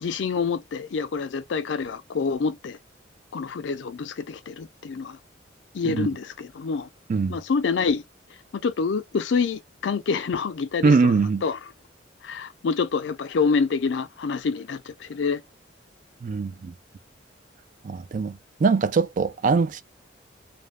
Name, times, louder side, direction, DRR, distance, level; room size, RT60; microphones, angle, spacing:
voice 1, 0.0-2.8 3.3-5.2 5.7-6.9 7.3-8.0 8.5-11.1 11.4-11.6 12.2-15.4, left 5 dB, 75° left, 0.4 m, -27 dB
voice 2, 10.8-11.4 16.2-16.7 17.8-19.8, right 4 dB, 45° right, 0.3 m, -22 dB
2.4 x 2.1 x 3.1 m
head